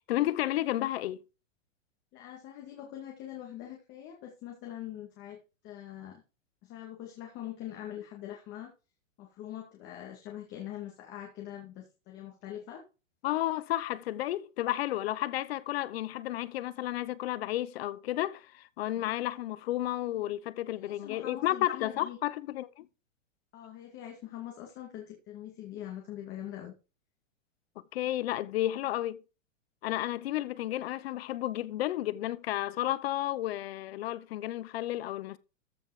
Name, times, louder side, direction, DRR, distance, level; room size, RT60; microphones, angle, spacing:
voice 1, 0.1-1.2 13.2-22.9 27.9-29.2 29.8-35.4, left 14 dB, 50° left, 0.9 m, -32 dB
voice 2, 2.1-5.4 5.6-6.2 6.6-8.7 9.2-12.8 18.9-19.1 20.8-22.2 23.5-26.7, left 12 dB, 25° left, 2.1 m, -43 dB
14.0 x 5.3 x 5.0 m
supercardioid pair, 160°, 39 cm